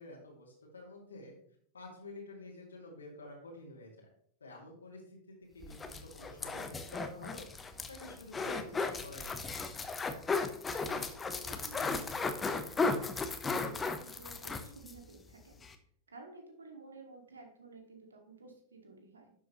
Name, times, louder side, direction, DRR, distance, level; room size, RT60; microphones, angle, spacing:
voice 1, 0.0-1.4 1.7-4.1 4.4-9.7, left 2 dB, 70° left, -1 dB, 2.2 m, -50 dB
sound 1, 5.6-15.0 15.3-15.4 15.6-15.7, left 4 dB, 15° left, 1.0 m, -35 dB
voice 2, 10.9-13.1 13.4-15.6 16.1-19.3, right 3 dB, 75° right, 3 dB, 2.1 m, -53 dB
11.5 x 7.2 x 3.1 m, 0.63 s
figure-of-eight pair, 90°, 0 cm